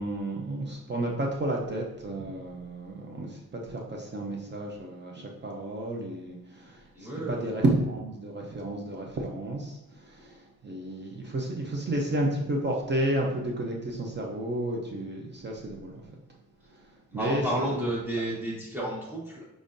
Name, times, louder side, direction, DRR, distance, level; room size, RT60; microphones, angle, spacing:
voice 1, 0.0-16.0 16.7-17.4, right 1 dB, 35° right, -1 dB, 0.5 m, -31 dB
voice 2, 6.9-7.4 17.1-19.4, right 1 dB, 5° right, -5 dB, 1.1 m, -31 dB
4.8 x 3.6 x 2.6 m, 0.89 s
wide cardioid pair, 165°, 32 cm